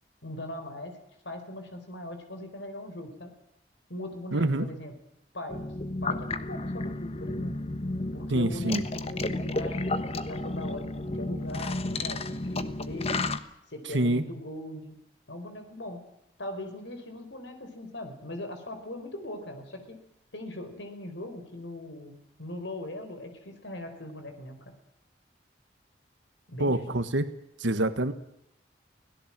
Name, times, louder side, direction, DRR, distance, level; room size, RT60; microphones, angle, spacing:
voice 1, 0.2-1.0 1.2-3.3 3.9-4.9 5.3-5.6 6.0-7.6 8.1-13.2 13.7-15.0 15.3-16.0 16.4-20.0 20.3-24.7 26.5-26.9, left 1 dB, 75° left, 6 dB, 4.5 m, -40 dB
voice 2, 4.3-4.7 8.3-8.8 13.8-14.3 26.6-27.3 27.6-28.1, right 1 dB, 85° right, 10 dB, 1.5 m, -26 dB
sound 1, 5.5-13.4, left 2 dB, 30° left, 1.3 m, -32 dB
25.0 x 17.5 x 7.5 m, 0.80 s
head